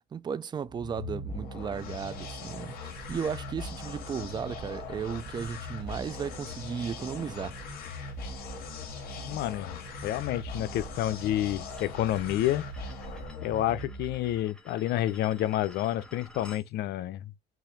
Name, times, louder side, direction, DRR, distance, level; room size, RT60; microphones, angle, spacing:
voice 1, 0.1-7.6, right 7 dB, 25° right, 0.4 m, -35 dB
sound 1, 0.6-14.4, left 3 dB, 60° left, 2.1 m, -40 dB
sound 2, 1.7-13.3, right 3 dB, 45° right, 1.2 m, -51 dB
voice 2, 9.2-12.6 13.4-17.3, left 13 dB, 75° left, 0.7 m, -29 dB
sound 3, 11.7-16.7, left 1 dB, 5° left, 1.1 m, -53 dB
6.0 x 2.6 x 3.3 m
cardioid pair, 110°, 17 cm